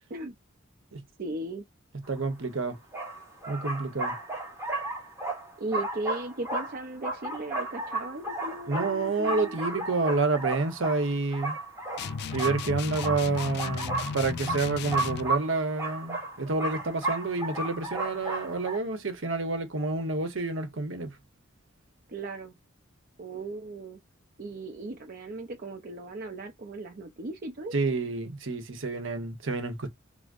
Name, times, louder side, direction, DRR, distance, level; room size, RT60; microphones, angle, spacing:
voice 1, 1.2-1.7 5.6-9.8 22.1-22.5 23.2-24.0 24.4-27.7, right 2 dB, 45° right, 0.5 m, -37 dB
voice 2, 2.1-2.8 3.5-4.1 8.7-11.6 12.3-21.2 27.7-29.9, right 3 dB, 70° right, 0.9 m, -29 dB
sound 1, 2.2-2.3 2.9-18.8, right 2 dB, 15° right, 1.0 m, -34 dB
sound 2, 12.0-15.4, left 6 dB, 55° left, 0.3 m, -35 dB
4.9 x 2.0 x 2.4 m
head